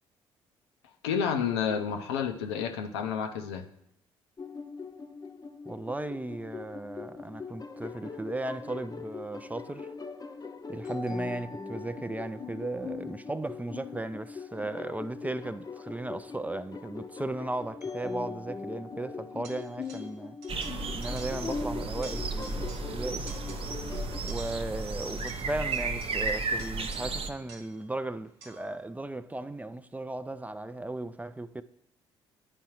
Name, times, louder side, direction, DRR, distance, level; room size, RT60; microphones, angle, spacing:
voice 1, 1.0-3.6, left 7 dB, 80° left, 0.5 m, -30 dB
sound 1, 4.4-24.2, left 4 dB, 25° left, 0.6 m, -41 dB
voice 2, 5.7-9.9 10.7-20.4 20.9-23.3 24.2-31.6, right 2 dB, 10° right, 0.3 m, -36 dB
sound 2, 19.4-20.2 20.4-21.7 21.9-23.0 23.3-23.9 24.3-27.9 28.4-28.8, right 4 dB, 85° right, 0.6 m, -51 dB
sound 3, 20.5-27.3, right 3 dB, 45° right, 0.6 m, -33 dB
10.5 x 4.5 x 3.0 m
hypercardioid pair, 50°, 14 cm